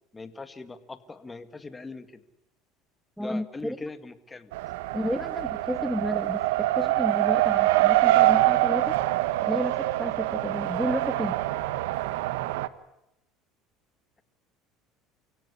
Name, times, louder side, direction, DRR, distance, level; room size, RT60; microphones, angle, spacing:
voice 1, 0.1-2.2 3.2-4.5, left 3 dB, 15° left, 10 dB, 2.1 m, -41 dB
voice 2, 3.2-3.8 4.9-9.0 9.4-11.3, equal, ahead, 12 dB, 0.8 m, -32 dB
Race car auto racing, 4.5-12.7, right 16 dB, 90° right, 1.1 m, -24 dB
28.5 x 17.0 x 9.8 m, 0.87 s
supercardioid pair, 115°, 0 cm